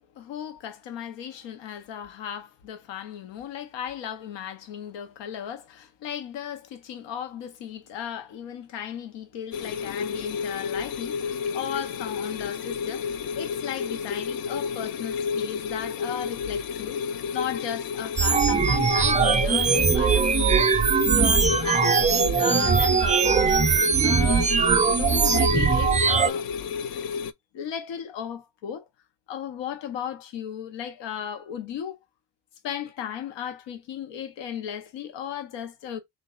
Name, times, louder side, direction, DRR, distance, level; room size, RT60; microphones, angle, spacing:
voice 1, 0.2-17.0 17.3-24.6 24.9-26.5 27.5-28.9 29.3-32.0 32.6-36.0, left 9 dB, 85° left, 0.8 m, -35 dB
sound 1, 9.5-27.3, left 6 dB, 60° left, 0.5 m, -31 dB
sound 2, 18.2-26.3, right 6 dB, 20° right, 0.4 m, -21 dB
3.2 x 2.5 x 3.7 m
cardioid pair, 80°, 42 cm